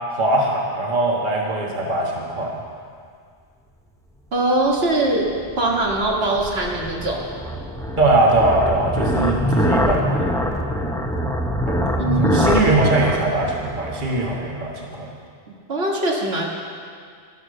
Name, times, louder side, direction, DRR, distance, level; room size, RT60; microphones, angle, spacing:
voice 1, 0.1-2.5 8.0-10.3 11.7-15.1, right 2 dB, 50° right, -2 dB, 1.7 m, -21 dB
voice 2, 4.3-5.3 5.6-7.3 12.0-12.4 15.7-16.4, right 2 dB, 75° right, -2 dB, 2.0 m, -21 dB
sound 1, 5.0-14.6, equal, 5° left, 0.8 m, -24 dB
12.0 x 11.5 x 6.6 m, 2.1 s
omnidirectional pair, 1.1 m